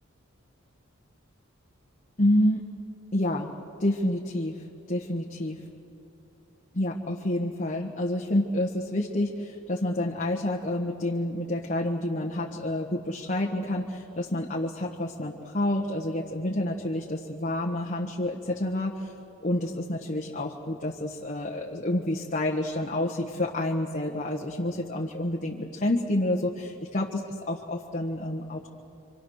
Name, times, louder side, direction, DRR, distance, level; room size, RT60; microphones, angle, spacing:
voice 1, 2.2-2.7 3.1-3.5 3.8-5.6 6.7-19.1 19.4-27.2 27.5-28.7, left 1 dB, 35° left, -1 dB, 1.4 m, -28 dB
28.0 x 25.5 x 6.5 m, 2.8 s
head